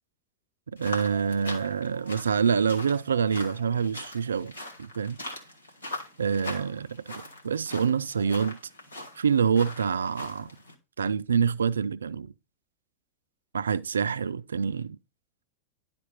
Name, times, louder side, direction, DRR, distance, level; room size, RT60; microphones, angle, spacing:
voice 1, 0.7-4.5 4.8-5.2 6.2-8.6 9.2-10.5 11.0-12.3 13.5-15.0, right 6 dB, 70° right, 0.3 m, -26 dB
sound 1, 0.8-10.7, left 1 dB, 75° left, 1.6 m, -42 dB
10.5 x 3.7 x 4.1 m
figure-of-eight pair, 90°, 0 cm